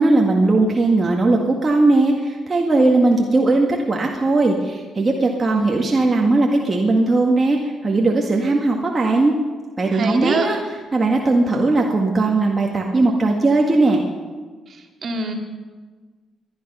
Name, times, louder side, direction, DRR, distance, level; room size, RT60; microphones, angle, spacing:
voice 1, 0.0-9.3 9.8-10.6 10.9-14.0, right 2 dB, 25° right, 0 dB, 1.8 m, -18 dB
voice 2, 9.9-10.5 15.0-15.3, right 4 dB, 50° right, 3 dB, 2.1 m, -23 dB
20.5 x 11.5 x 5.6 m, 1.4 s
cardioid pair, 90°, 0 cm